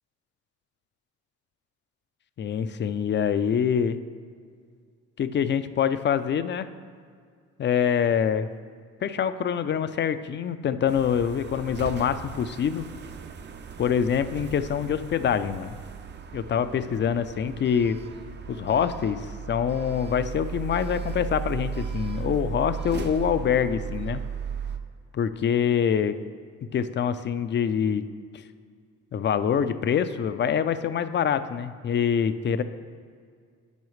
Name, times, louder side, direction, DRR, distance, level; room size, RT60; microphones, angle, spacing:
voice 1, 2.4-4.0 5.2-6.7 7.6-8.5 9.0-12.9 13.8-15.8 16.3-18.0 18.5-24.2 25.1-26.2 26.7-28.1 29.1-32.6, left 8 dB, 40° left, 12 dB, 0.4 m, -25 dB
sound 1, 10.9-24.8, right 6 dB, 35° right, 0.5 m, -36 dB
10.5 x 6.2 x 3.2 m, 2.1 s
cardioid pair, 90°, 30 cm